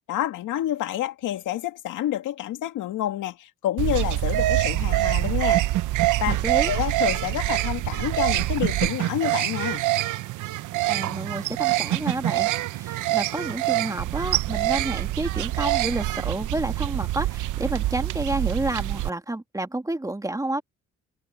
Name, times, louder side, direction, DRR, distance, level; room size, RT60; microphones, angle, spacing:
voice 1, 0.1-5.6 6.2-6.4 6.6-9.8, left 12 dB, 85° left, 2.4 m, -28 dB
sound 1, 3.8-19.1, right 16 dB, 85° right, 0.9 m, -25 dB
voice 2, 6.3-6.7 10.9-20.6, right 2 dB, 10° right, 2.3 m, -30 dB
cardioid pair, 90°, 30 cm